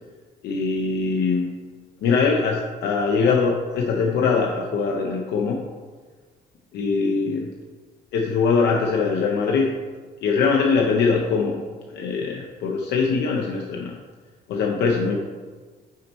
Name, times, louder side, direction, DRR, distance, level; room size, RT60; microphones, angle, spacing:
voice 1, 0.4-1.5 2.0-5.6 6.7-7.5 8.1-9.7 10.2-14.0 14.5-15.2, left 5 dB, 80° left, 0 dB, 0.7 m, -22 dB
6.4 x 4.2 x 4.4 m, 1.4 s
cardioid pair, 160°, 17 cm